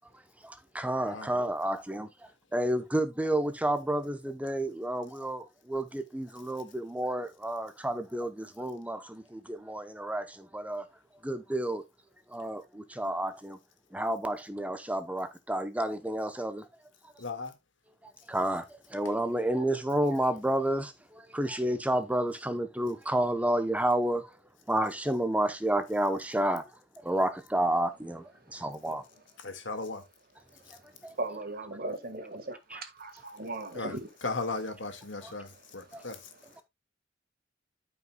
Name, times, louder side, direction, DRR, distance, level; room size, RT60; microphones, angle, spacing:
voice 1, 0.4-2.1 2.5-10.8 11.2-11.8 12.3-13.6 13.9-16.7 18.3-24.4 24.7-26.6 27.0-29.0 31.0-31.1 32.7-32.8 35.2-35.3 35.9-36.0, right 1 dB, 10° right, 0.8 m, -30 dB
voice 2, 17.2-17.5 29.4-30.0 33.8-33.9 34.2-36.2, left 3 dB, 75° left, 1.8 m, -36 dB
voice 3, 30.5-34.1 35.0-36.6, right 2 dB, 50° right, 1.6 m, -40 dB
14.0 x 5.6 x 2.3 m
head